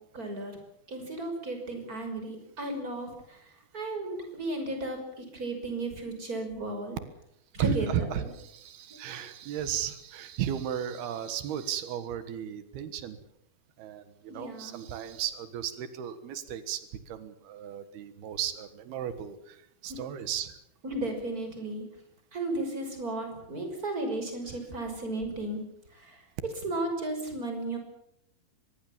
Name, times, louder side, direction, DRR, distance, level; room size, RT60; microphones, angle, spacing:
voice 1, 0.1-0.6 0.9-7.0 7.5-8.3 9.1-9.2 14.3-14.8 19.9-20.0 20.8-21.9 22.3-25.6 25.9-26.2 26.6-27.8, right 2 dB, 20° right, 5 dB, 6.2 m, -34 dB
voice 2, 7.6-13.2 13.8-20.6, right 10 dB, 90° right, 11 dB, 3.5 m, -35 dB
25.0 x 21.0 x 7.4 m, 0.77 s
omnidirectional pair, 4.3 m